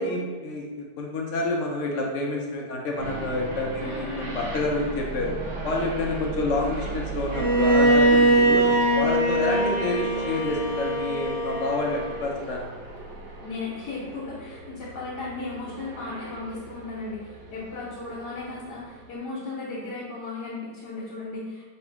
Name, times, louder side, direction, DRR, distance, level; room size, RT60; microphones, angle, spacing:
voice 1, 0.0-5.3 5.6-8.7 8.9-12.7, left 2 dB, 60° left, 0 dB, 0.8 m, -28 dB
sound 1, 3.0-19.2, right 3 dB, 85° right, 1.3 m, -37 dB
voice 2, 3.8-4.3 13.4-21.7, left 3 dB, 75° left, -6 dB, 1.4 m, -36 dB
Bowed string instrument, 7.3-12.3, right 1 dB, 40° right, 0.8 m, -22 dB
3.3 x 2.6 x 4.4 m, 1.4 s
omnidirectional pair, 1.8 m